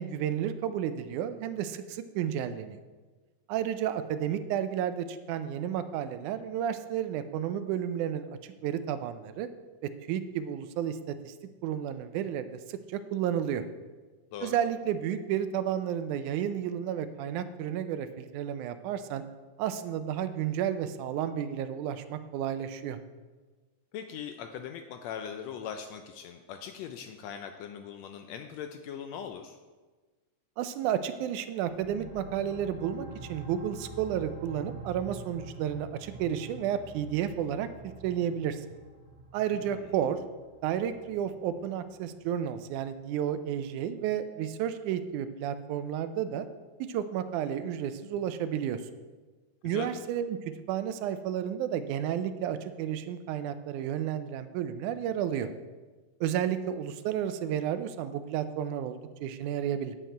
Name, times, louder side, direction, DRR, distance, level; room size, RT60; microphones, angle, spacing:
voice 1, 0.0-2.8 3.5-8.3 8.6-9.5 10.1-11.3 11.6-13.6 14.4-19.2 19.6-23.0 30.6-38.6 39.3-40.2 40.6-46.5 46.9-48.8 49.6-50.4 50.7-55.5 56.2-60.0, right 9 dB, 80° right, 10 dB, 2.0 m, -32 dB
voice 2, 23.9-29.6 39.5-39.9 49.6-49.9, left 8 dB, 90° left, 6 dB, 1.5 m, -40 dB
sound 1, 31.6-43.0, right 3 dB, ahead, 2.5 m, -47 dB
10.5 x 8.3 x 4.5 m, 1.3 s
omnidirectional pair, 3.7 m